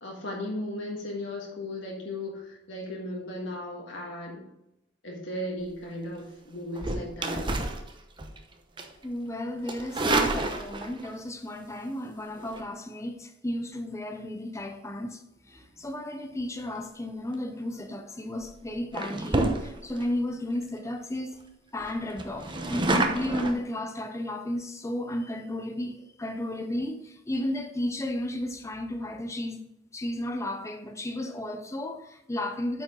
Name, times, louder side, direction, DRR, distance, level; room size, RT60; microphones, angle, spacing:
voice 1, 0.0-4.4 5.0-7.5, left 1 dB, 75° left, 1.7 m, -36 dB
sound 1, 6.7-8.4 8.8-9.0 9.7-11.1 12.4-12.6 17.6-17.9 18.4-18.6 18.9-20.0 20.6-20.7 20.9-21.0 21.3-21.4 21.8-23.5, right 2 dB, 25° right, 0.8 m, -29 dB
voice 2, 9.0-21.4 21.7-29.7 29.9-32.8, left 1 dB, 15° left, 0.5 m, -34 dB
8.7 x 4.9 x 3.7 m
head